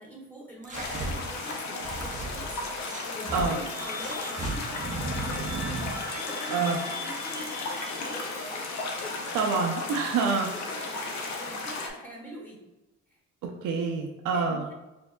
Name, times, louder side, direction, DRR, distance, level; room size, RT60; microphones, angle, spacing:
voice 1, 0.0-5.6 6.0-6.6 7.0-8.8 9.0-9.4 10.5-12.6 14.3-14.7, equal, 5° left, -4 dB, 1.5 m, -44 dB
sound 1, 0.6-3.5 4.0-6.0, right 2 dB, 25° right, 0.4 m, -35 dB
sound 2, 0.7-11.9, left 3 dB, 65° left, 0.7 m, -35 dB
sound 3, 3.0-9.6, left 1 dB, 30° left, 1.0 m, -42 dB
voice 2, 6.5-6.8 9.3-10.5 13.4-14.7, right 5 dB, 85° right, 1 dB, 0.5 m, -27 dB
4.4 x 2.7 x 2.2 m, 1.0 s
cardioid pair, 90°, 30 cm